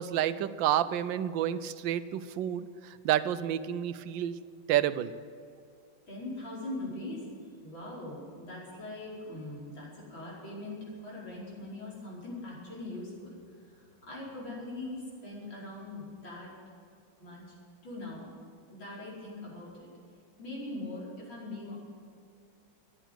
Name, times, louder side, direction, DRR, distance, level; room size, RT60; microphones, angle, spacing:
voice 1, 0.0-4.4 4.7-5.1, right 11 dB, 75° right, 14 dB, 1.4 m, -29 dB
voice 2, 6.1-7.3 7.6-16.5 17.2-17.4 17.8-18.3 18.7-19.9 20.4-21.8, left 2 dB, 75° left, -5 dB, 5.7 m, -41 dB
14.0 x 10.0 x 9.2 m, 2.4 s
omnidirectional pair, 2.2 m